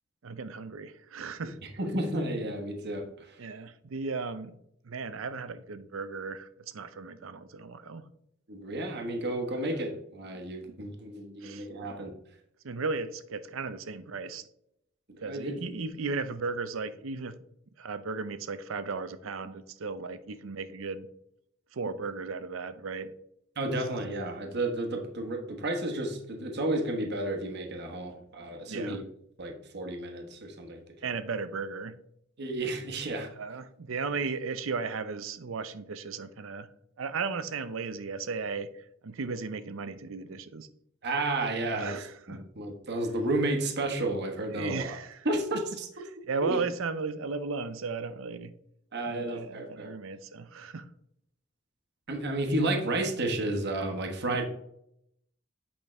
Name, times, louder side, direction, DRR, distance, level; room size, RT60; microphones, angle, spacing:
voice 1, 0.2-1.6 3.4-4.5 4.8-8.1 11.4-11.7 12.6-14.5 15.2-17.4 17.8-21.1 21.7-23.1 28.7-29.0 31.0-32.0 33.4-36.7 37.0-40.7 41.6-42.5 44.5-45.3 46.1-48.5 49.1-50.9, right 4 dB, 70° right, 13 dB, 0.6 m, -35 dB
voice 2, 1.8-3.4 8.5-12.1 15.2-15.6 23.6-29.0 29.4-31.1 32.4-33.3 41.0-42.0 42.3-45.0 45.2-45.9 46.4-46.6 48.9-50.0 52.1-54.5, right 2 dB, 55° right, 3 dB, 1.2 m, -32 dB
8.6 x 5.2 x 3.2 m, 0.76 s
head